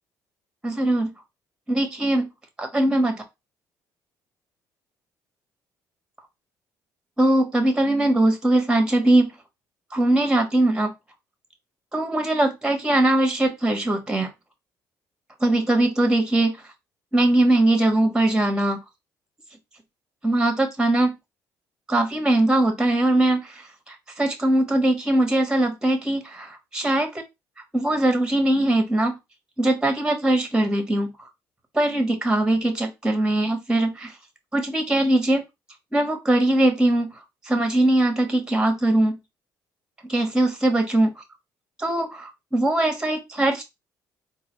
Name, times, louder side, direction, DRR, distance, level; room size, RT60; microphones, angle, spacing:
voice 1, 0.6-1.1 1.7-2.3 2.6-3.2 7.2-9.3 9.9-10.9 11.9-14.3 15.4-16.6 17.1-18.8 20.2-21.1 21.9-27.1 27.7-29.1 29.6-31.1 31.7-34.1 34.5-35.4 35.9-37.1 37.4-39.2 40.1-41.1 41.8-43.6, right 1 dB, 10° right, 5 dB, 1.3 m, -21 dB
3.8 x 2.6 x 3.1 m, 0.22 s
supercardioid pair, 70°, 8 cm